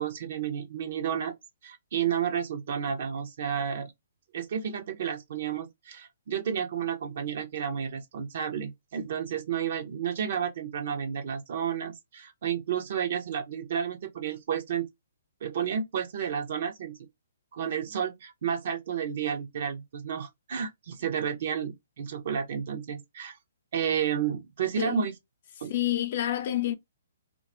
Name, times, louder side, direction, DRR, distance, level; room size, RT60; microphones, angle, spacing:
voice 1, 0.0-1.3 1.6-3.9 4.3-14.9 15.4-17.0 17.5-23.4 23.7-25.2 25.6-25.7, right 8 dB, 55° right, 0.5 m, -31 dB
voice 2, 24.8-25.1 25.7-26.7, left 12 dB, 50° left, 0.5 m, -28 dB
2.2 x 2.2 x 2.5 m
figure-of-eight pair, 130°, 0 cm